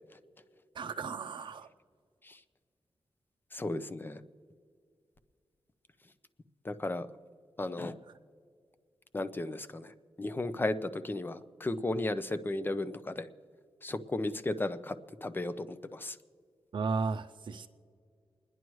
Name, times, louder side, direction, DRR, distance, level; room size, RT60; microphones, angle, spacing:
voice 1, 0.7-1.7 16.7-17.7, right 4 dB, 60° right, 7 dB, 0.5 m, -34 dB
voice 2, 3.5-4.2 6.6-7.1 7.6-7.9 9.1-9.9 10.2-13.3 13.8-16.2, left 2 dB, 20° left, 12 dB, 0.6 m, -34 dB
29.5 x 10.5 x 3.1 m, 2.2 s
wide cardioid pair, 115°, 9 cm